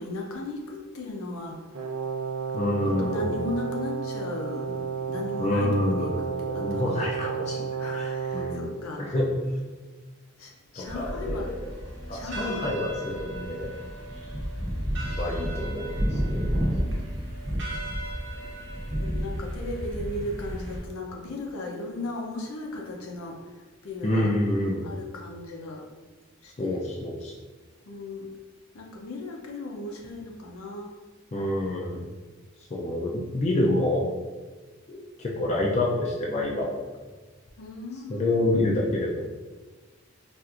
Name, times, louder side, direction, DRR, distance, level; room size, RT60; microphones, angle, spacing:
voice 1, 0.0-1.6 2.8-6.1 6.4-7.5 7.8-9.0 10.4-11.5 12.1-12.7 19.0-24.3 24.8-25.8 26.4-26.8 27.9-28.3 28.7-30.9 37.6-38.5, left 2 dB, 75° left, 0 dB, 0.6 m, -36 dB
Brass instrument, 1.7-8.6, right 6 dB, 75° right, 0.6 m, -32 dB
voice 2, 2.5-3.5 4.7-4.8 5.2-9.3 10.8-11.6 12.1-13.7 15.2-16.5 24.0-24.9 26.6-27.3 31.3-32.1 32.7-34.0 34.9-36.8 38.1-39.2, left 1 dB, 30° left, -3 dB, 0.3 m, -28 dB
sound 1, 10.9-20.8, equal, 55° right, 0.9 m, -31 dB
4.2 x 2.5 x 2.4 m, 1.3 s
head